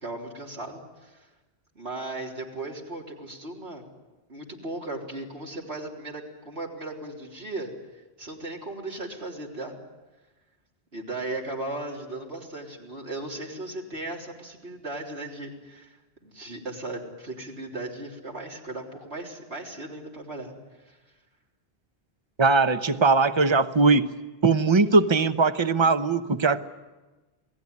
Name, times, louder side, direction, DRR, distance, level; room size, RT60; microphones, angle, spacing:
voice 1, 0.0-1.3 1.8-3.8 4.3-9.8 10.9-20.5 20.8-21.0, right 2 dB, 70° right, -1 dB, 4.0 m, -37 dB
voice 2, 22.4-24.1 24.4-26.6, right 3 dB, 30° right, 10 dB, 0.9 m, -20 dB
28.0 x 19.0 x 9.6 m, 1.2 s
omnidirectional pair, 1.1 m